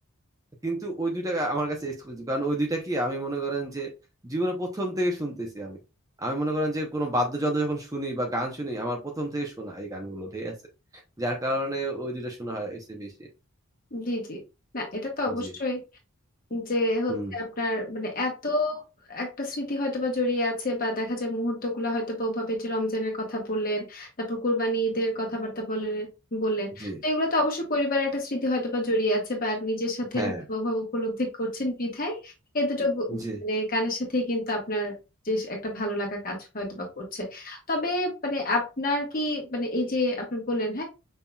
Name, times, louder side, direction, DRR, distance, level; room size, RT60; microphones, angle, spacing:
voice 1, 0.6-3.9 4.2-5.8 6.2-10.5 11.2-13.3 15.3-15.5 17.1-17.3 26.8-27.0 30.1-30.4 33.1-33.4, right 1 dB, 15° right, 1 dB, 0.6 m, -30 dB
voice 2, 13.9-14.4 14.7-15.8 16.5-18.8 19.1-34.9 35.2-40.8, left 1 dB, 40° left, 1 dB, 1.3 m, -28 dB
5.4 x 2.8 x 2.3 m, 0.28 s
head